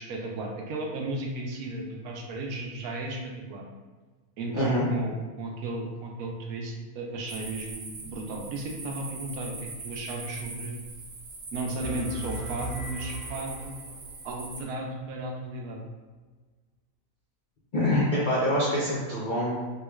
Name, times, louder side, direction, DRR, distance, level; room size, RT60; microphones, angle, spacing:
voice 1, 0.0-3.6 4.4-9.5 9.8-10.7 11.5-13.7 14.2-15.8, right 2 dB, 75° right, 0 dB, 1.0 m, -34 dB
voice 2, 4.5-4.9 17.7-19.6, left 1 dB, 65° left, -6 dB, 0.5 m, -25 dB
sound 1, 7.3-14.6, right 3 dB, 60° right, 0.7 m, -41 dB
sound 2, 11.8-14.2, right 1 dB, 10° right, 0.6 m, -38 dB
3.6 x 3.1 x 2.3 m, 1.3 s
omnidirectional pair, 1.6 m